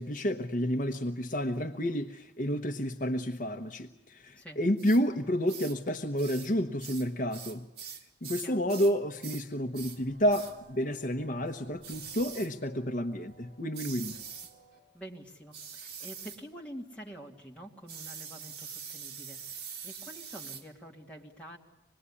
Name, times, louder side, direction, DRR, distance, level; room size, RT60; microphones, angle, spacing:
voice 1, 0.0-7.6 8.2-14.2, equal, 50° left, 7 dB, 1.0 m, -30 dB
sound 1, 4.8-5.0 5.5-5.8 6.2-6.5 6.8-9.0 9.2-9.5 9.7-10.0 10.3-10.6 11.8-12.5 13.7-14.5 15.5-16.4 17.9-20.7, right 7 dB, 65° right, 1.9 m, -43 dB
voice 2, 8.4-8.7 14.9-21.6, right 1 dB, 10° left, -1 dB, 2.5 m, -47 dB
sound 2, 9.8-14.8, right 1 dB, 50° right, 5.1 m, -58 dB
26.0 x 20.0 x 9.9 m, 0.88 s
head